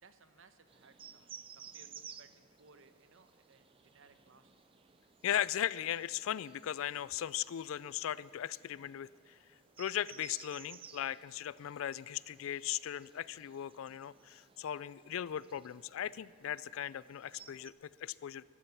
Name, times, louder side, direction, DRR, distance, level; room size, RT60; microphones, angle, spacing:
voice 1, 0.0-4.5, right 4 dB, 65° right, 10 dB, 1.0 m, -63 dB
sound 1, 0.7-17.7, right 8 dB, 25° right, 0.4 m, -57 dB
voice 2, 5.2-9.1 9.8-18.4, left 10 dB, 70° left, 20 dB, 0.3 m, -38 dB
13.5 x 12.5 x 7.1 m, 2.2 s
head